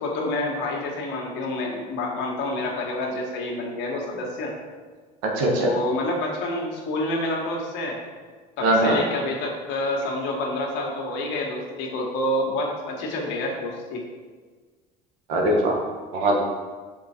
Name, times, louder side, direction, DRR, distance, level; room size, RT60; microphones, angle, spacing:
voice 1, 0.0-4.5 5.5-8.0 8.6-14.0, left 1 dB, 70° left, 0 dB, 1.5 m, -28 dB
voice 2, 5.2-5.7 8.6-9.0 15.3-15.8 16.1-16.4, right 1 dB, 75° right, 0 dB, 1.4 m, -21 dB
5.8 x 4.5 x 4.4 m, 1.4 s
supercardioid pair, 80°, 20 cm